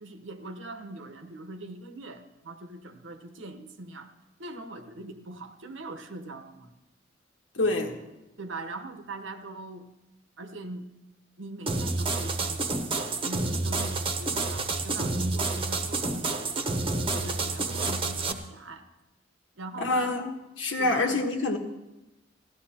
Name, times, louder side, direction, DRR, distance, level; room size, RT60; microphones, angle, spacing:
voice 1, 0.0-4.1 4.4-6.7 8.4-9.9 10.4-10.9 11.4-16.8 17.1-18.9 19.6-20.2 20.8-21.2, right 2 dB, 85° right, 8 dB, 1.1 m, -41 dB
voice 2, 7.5-8.0 19.8-21.6, left 2 dB, 80° left, 3 dB, 1.5 m, -27 dB
sound 1, 11.7-18.3, right 3 dB, 30° right, 0.9 m, -29 dB
16.0 x 12.5 x 4.4 m, 0.98 s
head